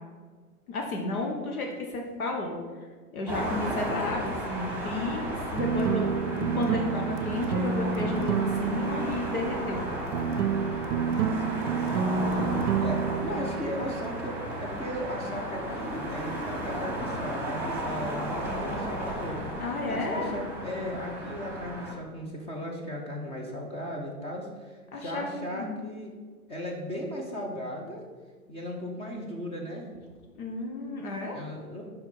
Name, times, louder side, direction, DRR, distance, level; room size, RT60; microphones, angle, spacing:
voice 1, 0.7-2.6 3.1-9.9 19.6-20.4 24.9-25.3 25.5-25.7 30.4-31.4, left 2 dB, 70° left, 1 dB, 1.2 m, -32 dB
sound 1, 3.3-21.9, right 1 dB, 5° right, 1.5 m, -34 dB
sound 2, 5.5-14.8, right 6 dB, 75° right, 0.5 m, -29 dB
voice 2, 11.3-12.1 12.8-19.5 19.9-26.2 26.5-28.0 28.5-29.9 31.3-31.8, equal, 15° left, 0 dB, 0.7 m, -36 dB
5.3 x 4.6 x 5.4 m, 1.5 s
hypercardioid pair, 115°, 45 cm